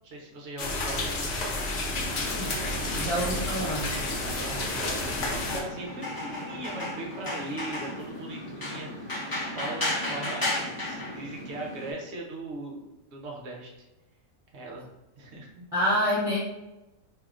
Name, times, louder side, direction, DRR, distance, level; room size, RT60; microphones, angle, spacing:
voice 1, 0.0-1.5 2.5-3.0 4.1-8.9 9.5-12.8 13.1-13.7 14.5-14.9 15.2-15.6, right 2 dB, 60° right, -1 dB, 0.9 m, -39 dB
sound 1, 0.6-5.6, left 2 dB, 60° left, 0.9 m, -30 dB
sound 2, 1.9-11.9, left 1 dB, 20° left, 0.7 m, -35 dB
voice 2, 2.8-3.9 15.7-16.4, equal, 30° right, -10 dB, 0.7 m, -27 dB
3.6 x 2.7 x 2.4 m, 0.97 s
omnidirectional pair, 1.4 m